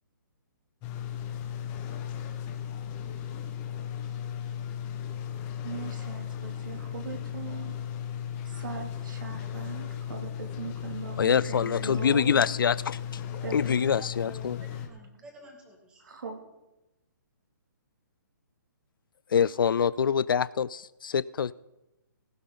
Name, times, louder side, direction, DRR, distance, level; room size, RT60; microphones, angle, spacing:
sound 1, 0.8-14.9, left 9 dB, 15° left, 1.2 m, -36 dB
voice 1, 5.6-7.7 8.4-12.4 13.4-14.0 16.0-16.4, right 5 dB, 70° right, 5 dB, 2.8 m, -40 dB
voice 2, 11.2-13.2 13.5-14.6 19.3-21.5, left 7 dB, 85° left, 18 dB, 0.5 m, -25 dB
voice 3, 13.4-16.0, left 2 dB, 10° right, 1 dB, 2.1 m, -50 dB
16.5 x 15.5 x 4.0 m, 0.98 s
hypercardioid pair, 170°, 11 cm